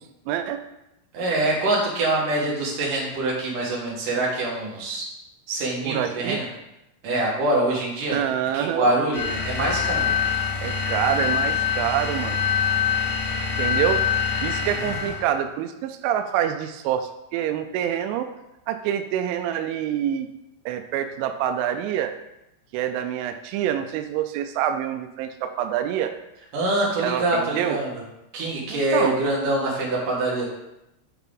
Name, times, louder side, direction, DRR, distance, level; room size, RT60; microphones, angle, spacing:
voice 1, 0.3-0.6 5.9-6.4 8.1-9.0 10.6-12.5 13.6-14.0 14.4-18.3 18.7-20.3 20.7-22.1 22.7-26.1 27.0-27.8 28.7-29.2, right 10 dB, 90° right, 7 dB, 2.7 m, -26 dB
voice 2, 1.1-5.1 5.5-6.5 7.0-8.2 8.5-10.1 26.5-27.9 28.3-30.5, right 2 dB, 70° right, -4 dB, 2.1 m, -24 dB
sound 1, 9.1-15.3, left 7 dB, 80° left, 1.6 m, -24 dB
8.0 x 5.7 x 3.8 m, 0.89 s
omnidirectional pair, 5.9 m